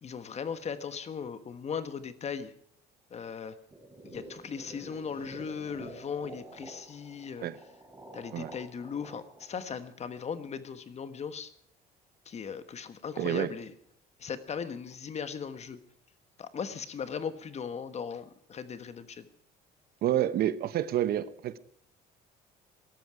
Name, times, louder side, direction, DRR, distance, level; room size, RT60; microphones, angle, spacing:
voice 1, 0.0-2.5 3.1-3.6 4.0-7.5 8.1-11.5 12.2-13.7 14.2-15.8 16.4-19.3, left 6 dB, 40° left, 1.3 m, -38 dB
sound 1, 3.7-10.6, right 1 dB, 15° right, 6.4 m, -49 dB
voice 2, 13.2-13.5 20.0-21.6, right 12 dB, 65° right, 0.9 m, -28 dB
18.0 x 13.0 x 4.9 m
cardioid pair, 110°, 17 cm